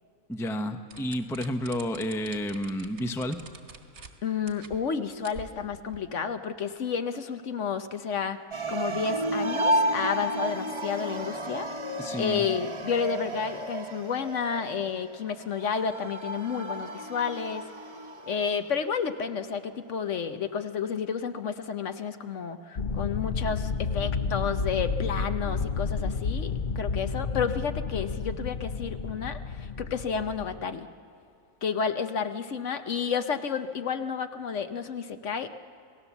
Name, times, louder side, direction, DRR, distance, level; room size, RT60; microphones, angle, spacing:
voice 1, 0.3-3.4 12.0-12.5, equal, 5° left, 7 dB, 0.6 m, -31 dB
sound 1, 0.9-4.1 4.5-4.8 5.1-6.0, right 4 dB, 70° right, 2.0 m, -46 dB
voice 2, 4.2-8.4 8.7-11.7 12.2-17.6 18.3-30.9 31.6-35.5, left 6 dB, 60° left, 8 dB, 1.1 m, -31 dB
sound 2, 8.5-18.9, right 1 dB, 20° right, 1.0 m, -32 dB
sound 3, 22.8-30.6, left 5 dB, 45° left, 0.7 m, -31 dB
28.0 x 17.5 x 7.2 m, 2.5 s
omnidirectional pair, 1.5 m